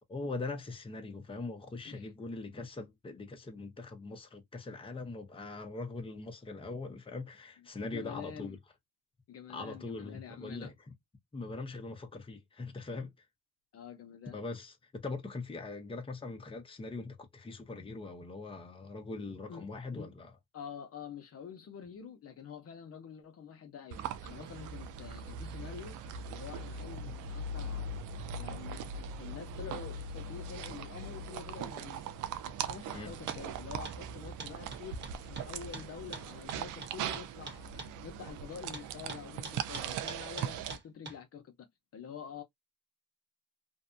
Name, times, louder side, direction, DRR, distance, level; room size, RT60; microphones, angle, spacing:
voice 1, 0.1-8.6 9.5-10.7 11.3-13.1 14.3-20.3 32.9-33.1, left 3 dB, 20° left, 0.7 m, -41 dB
voice 2, 7.9-8.6 9.3-10.7 13.7-14.4 19.5-20.1 20.5-26.0 26.3-27.9 28.4-32.1 32.4-41.7 41.9-42.4, left 7 dB, 50° left, 0.7 m, -47 dB
sound 1, 23.9-40.8, right 5 dB, 85° right, 0.5 m, -40 dB
sound 2, 33.3-33.4 33.9-34.0 34.4-37.9 38.7-41.2, right 4 dB, 35° right, 1.1 m, -44 dB
2.6 x 2.1 x 2.5 m
cardioid pair, 90°, 30 cm